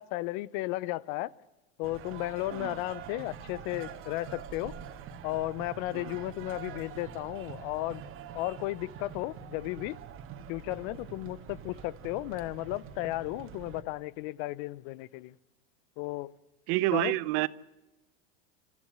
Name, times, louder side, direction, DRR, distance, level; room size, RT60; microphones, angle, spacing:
voice 1, 0.0-1.3 1.8-4.8 5.2-8.0 8.3-10.0 10.5-15.3 16.0-16.3 16.9-17.1, left 18 dB, 60° left, 0.8 m, -34 dB
sound 1, 1.8-13.8, right 8 dB, 40° right, 1.9 m, -45 dB
voice 2, 16.7-17.5, right 19 dB, 60° right, 0.9 m, -28 dB
27.5 x 14.5 x 8.1 m
supercardioid pair, 125°, 31 cm